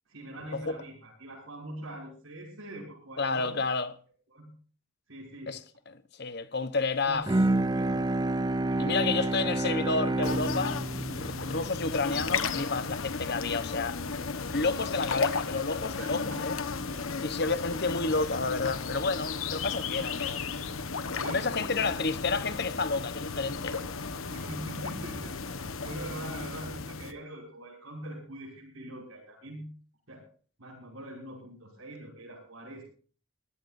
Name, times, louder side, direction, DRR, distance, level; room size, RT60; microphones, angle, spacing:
voice 1, 0.1-3.6 4.3-4.5 5.1-5.6 7.1-7.2 7.6-8.1 8.7-9.6 15.9-16.5 21.2-22.0 24.2-29.7 30.1-30.3 30.6-32.8, right 1 dB, 90° right, 6.1 m, -43 dB
voice 2, 3.2-3.9 5.5-5.6 5.9-7.3 8.8-14.0 14.5-16.6 17.2-20.4 21.2-23.8, left 3 dB, 50° left, 1.0 m, -30 dB
Bowed string instrument, 7.3-12.7, right 2 dB, 20° right, 0.5 m, -29 dB
sound 1, 10.2-27.1, left 4 dB, 85° left, 1.3 m, -34 dB
23.5 x 15.0 x 2.7 m
head